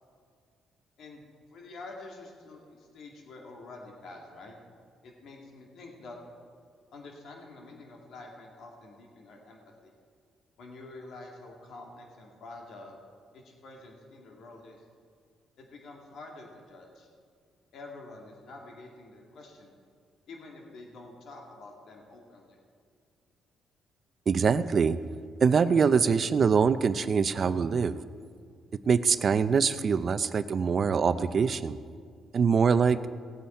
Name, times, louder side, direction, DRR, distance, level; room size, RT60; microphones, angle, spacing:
voice 1, 1.5-4.5 5.0-6.2 6.9-9.9 10.6-13.0 13.3-14.8 15.6-17.1 17.7-19.8 20.3-22.6, left 2 dB, 70° left, 0 dB, 2.1 m, -47 dB
voice 2, 24.3-25.0 25.4-28.0 28.9-31.8 32.3-33.0, right 6 dB, 45° right, 13 dB, 0.5 m, -24 dB
18.0 x 8.3 x 4.4 m, 2.1 s
cardioid pair, 90°, 0 cm